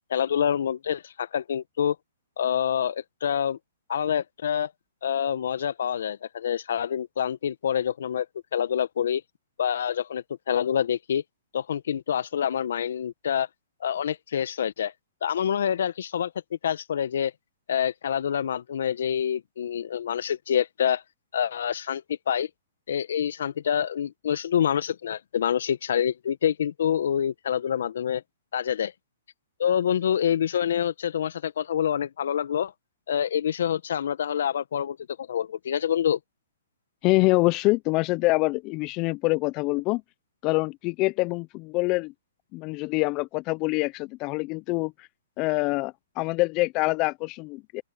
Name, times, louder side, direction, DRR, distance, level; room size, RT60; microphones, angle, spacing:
voice 1, 0.1-2.0 2.4-3.6 3.9-4.7 5.0-8.3 8.5-9.2 9.6-11.2 11.5-13.5 13.8-14.9 15.2-16.3 16.6-17.3 17.7-21.0 21.3-22.5 22.9-28.2 28.5-28.9 29.6-32.7 33.1-36.2, left 9 dB, 70° left, 1.5 m, -26 dB
voice 2, 37.0-40.0 40.4-42.1 42.5-45.1 45.4-47.8, left 23 dB, 35° left, 0.7 m, -25 dB
open air
hypercardioid pair, 130°, 0 cm